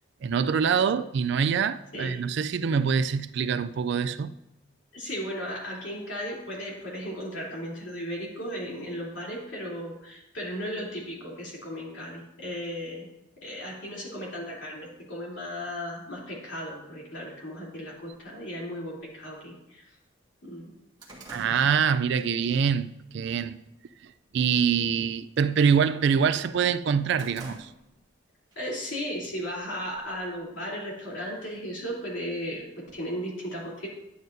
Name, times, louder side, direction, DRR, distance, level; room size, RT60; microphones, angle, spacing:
voice 1, 0.2-4.3 21.3-23.6 24.0-27.7, right 6 dB, 55° right, 0.3 m, -25 dB
voice 2, 4.9-13.1 13.4-19.9 20.4-20.7 28.5-33.9, equal, 60° left, 3.2 m, -36 dB
sound 1, 19.1-19.2 19.7-19.8 20.1-22.5 22.9-23.2 23.7-24.2 24.4-24.8 25.1-26.3 26.7-28.2 28.5-28.6 29.5-30.4, right 2 dB, 20° right, 1.7 m, -48 dB
11.0 x 9.1 x 2.6 m
head